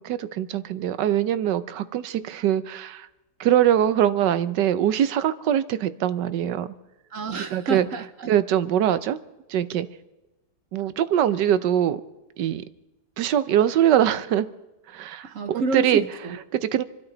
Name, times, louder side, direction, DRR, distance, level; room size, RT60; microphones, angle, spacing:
voice 1, 0.0-3.1 3.4-6.7 7.5-7.9 8.3-9.2 9.5-9.9 10.7-12.0 12.4-12.6 13.2-14.5 14.9-16.0 16.5-16.8, right 10 dB, 70° right, 14 dB, 1.3 m, -22 dB
voice 2, 7.1-8.3 15.2-16.4, right 2 dB, 50° right, 9 dB, 1.1 m, -29 dB
27.0 x 13.0 x 4.0 m, 1.0 s
omnidirectional pair, 2.0 m